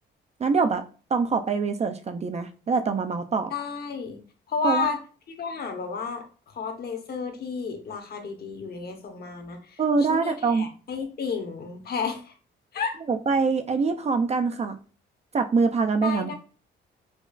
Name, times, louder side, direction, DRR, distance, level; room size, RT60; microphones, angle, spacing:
voice 1, 0.4-0.8 1.1-3.5 4.6-4.9 9.8-10.7 13.1-14.8 15.3-16.3, right 4 dB, 35° right, 0.4 m, -24 dB
voice 2, 3.5-4.2 4.5-5.0 5.3-9.8 10.1-12.3 12.7-13.0 16.0-16.3, left 5 dB, 50° left, 0.9 m, -31 dB
5.0 x 2.4 x 2.3 m
cardioid pair, 90°, 20 cm